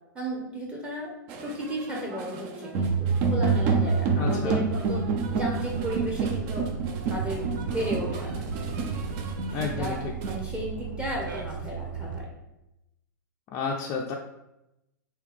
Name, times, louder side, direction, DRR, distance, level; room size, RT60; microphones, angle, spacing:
voice 1, 0.1-1.1 1.4-5.0 5.3-6.7 7.1-8.5 9.5-12.3, equal, 10° right, -2 dB, 0.8 m, -34 dB
sound 1, 1.3-10.4, right 4 dB, 40° right, 0.5 m, -28 dB
sound 2, 2.8-12.2, right 4 dB, 90° right, 0.6 m, -35 dB
voice 2, 4.2-4.6 9.5-10.1 13.5-14.1, left 6 dB, 30° left, -1 dB, 0.4 m, -31 dB
3.5 x 2.8 x 3.3 m, 0.91 s
hypercardioid pair, 115°, 11 cm